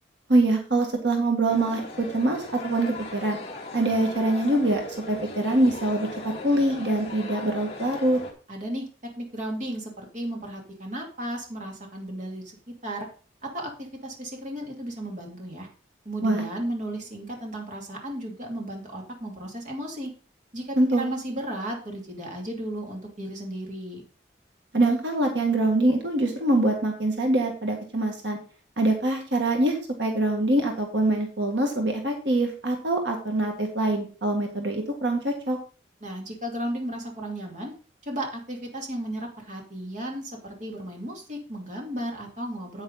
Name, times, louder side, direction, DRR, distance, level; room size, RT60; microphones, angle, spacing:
voice 1, 0.3-3.4 3.7-4.8 5.1-8.2 16.2-16.4 20.8-21.0 24.7-28.4 28.8-35.6, right 2 dB, 75° right, 2 dB, 1.8 m, -24 dB
sound 1, 1.5-8.3, left 2 dB, 30° left, 2.0 m, -38 dB
voice 2, 8.5-8.9 9.2-13.1 13.4-15.7 16.0-20.1 20.5-24.0 36.0-37.7 38.0-42.8, right 1 dB, 40° right, 0 dB, 2.5 m, -34 dB
9.1 x 8.7 x 4.0 m, 0.37 s
head